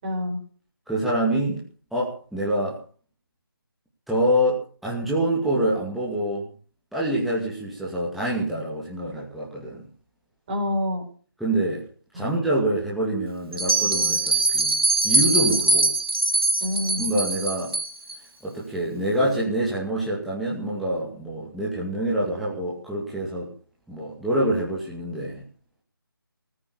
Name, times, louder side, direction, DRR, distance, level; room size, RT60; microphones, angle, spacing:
voice 1, 0.0-0.4 10.5-11.0 12.1-12.4 16.6-17.1, left 1 dB, 25° right, 2 dB, 5.7 m, -27 dB
voice 2, 0.9-1.6 1.9-2.8 4.1-6.4 6.9-9.9 11.4-11.8 12.1-14.8 15.0-15.9 17.0-17.7 18.4-23.5 23.9-25.4, right 1 dB, ahead, -7 dB, 2.6 m, -26 dB
Bell, 13.5-18.2, right 2 dB, 90° right, 3.8 m, -22 dB
19.5 x 9.0 x 7.1 m, 0.42 s
figure-of-eight pair, 155°, 12 cm